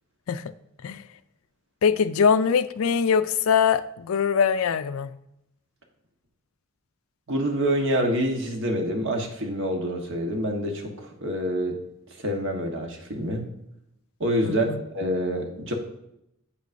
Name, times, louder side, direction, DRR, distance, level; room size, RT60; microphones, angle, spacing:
voice 1, 1.8-5.1 14.4-14.8, left 6 dB, 80° left, 13 dB, 0.4 m, -22 dB
voice 2, 7.3-11.8 12.2-13.4 14.2-14.7 14.9-15.7, equal, 60° right, 3 dB, 1.3 m, -26 dB
8.5 x 8.2 x 2.6 m, 0.80 s
head